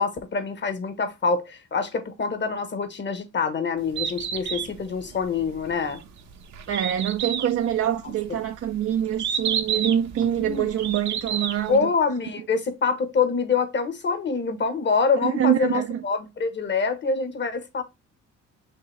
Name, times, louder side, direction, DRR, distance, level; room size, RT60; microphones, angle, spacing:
voice 1, 0.0-6.0 10.4-10.7 11.7-17.8, left 5 dB, 35° left, 1.3 m, -25 dB
Bird, 3.8-11.8, right 8 dB, 65° right, 1.0 m, -31 dB
voice 2, 6.7-11.9 15.2-16.0, right 10 dB, 50° right, 0.6 m, -25 dB
5.6 x 2.9 x 3.3 m
cardioid pair, 90°, 30 cm